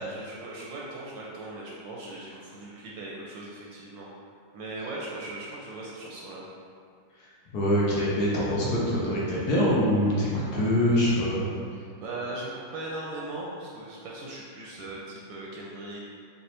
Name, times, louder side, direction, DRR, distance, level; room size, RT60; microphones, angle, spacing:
voice 1, 0.0-4.1 4.5-6.5 11.7-16.0, right 2 dB, 75° right, -4 dB, 1.1 m, -38 dB
voice 2, 7.2-11.5, equal, 60° left, -6 dB, 1.1 m, -24 dB
4.1 x 3.5 x 2.9 m, 2.2 s
omnidirectional pair, 2.3 m